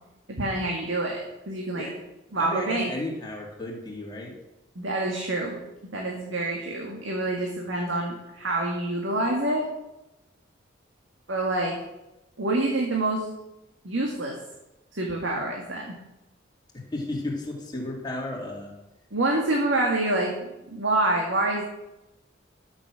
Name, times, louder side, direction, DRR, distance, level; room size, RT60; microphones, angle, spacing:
voice 1, 0.4-1.9 2.3-2.9 4.8-5.6 5.9-9.7 11.3-11.8 12.4-13.3 13.8-14.4 14.9-15.9 19.1-21.6, right 2 dB, 85° right, 0 dB, 1.8 m, -27 dB
voice 2, 2.4-4.4 16.7-18.7, left 2 dB, 20° left, -2 dB, 2.7 m, -33 dB
12.0 x 7.5 x 6.3 m, 0.96 s
head